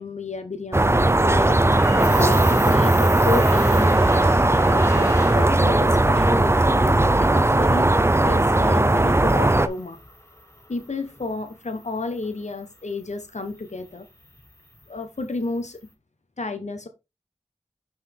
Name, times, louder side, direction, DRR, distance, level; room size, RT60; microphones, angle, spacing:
voice 1, 0.0-4.1 4.6-7.9 8.2-10.0 10.7-14.1 14.9-15.8 16.4-16.9, left 3 dB, 70° left, 1.2 m, -31 dB
sound 1, 0.7-9.7, right 2 dB, 20° right, 0.6 m, -18 dB
sound 2, 1.7-15.8, left 1 dB, 20° left, 1.8 m, -41 dB
5.9 x 5.6 x 3.5 m
wide cardioid pair, 40°, 12 cm